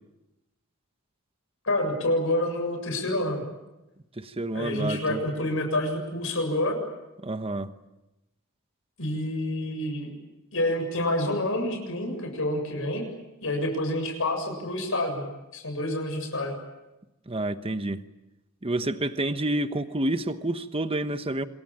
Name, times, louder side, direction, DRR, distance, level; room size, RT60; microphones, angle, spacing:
voice 1, 1.6-3.4 4.5-6.8 9.0-10.1 10.5-13.0 13.4-16.6, left 1 dB, 65° left, 7.4 m, -28 dB
voice 2, 4.2-5.2 7.2-7.7 17.3-18.0 18.6-21.5, right 1 dB, 25° right, 1.1 m, -29 dB
27.0 x 22.5 x 8.9 m
head